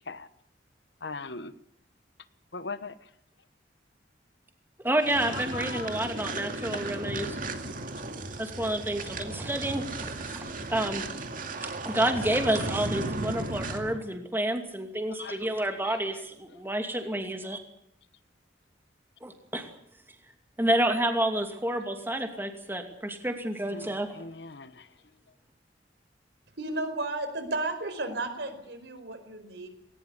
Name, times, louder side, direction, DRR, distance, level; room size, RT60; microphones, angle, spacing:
voice 1, 1.0-1.5 2.5-2.9 5.3-6.0 6.7-6.9 15.2-15.5 15.8-16.0 23.7-24.9, left 4 dB, 65° left, 14 dB, 1.2 m, -40 dB
voice 2, 4.8-7.4 8.4-11.0 11.6-17.6 19.2-19.6 20.6-24.1, right 1 dB, 10° right, 5 dB, 2.6 m, -29 dB
sound 1, 5.0-14.0, right 2 dB, 50° right, 2.4 m, -35 dB
voice 3, 26.6-29.7, right 2 dB, 65° right, 8 dB, 4.8 m, -33 dB
19.5 x 19.5 x 8.4 m, 0.72 s
head